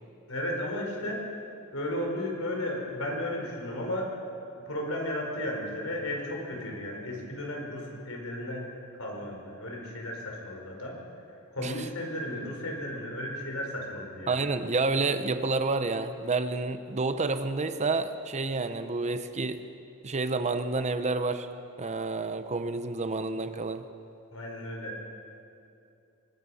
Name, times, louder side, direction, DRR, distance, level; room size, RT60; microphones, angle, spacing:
voice 1, 0.3-1.3 1.7-4.1 4.5-8.7 9.0-11.0 11.5-14.4 24.3-25.0, left 1 dB, 70° left, 0 dB, 4.6 m, -34 dB
voice 2, 14.3-19.7 20.0-21.5 21.8-23.8, right 3 dB, 30° right, 10 dB, 0.8 m, -29 dB
24.0 x 20.5 x 5.6 m, 2.7 s
head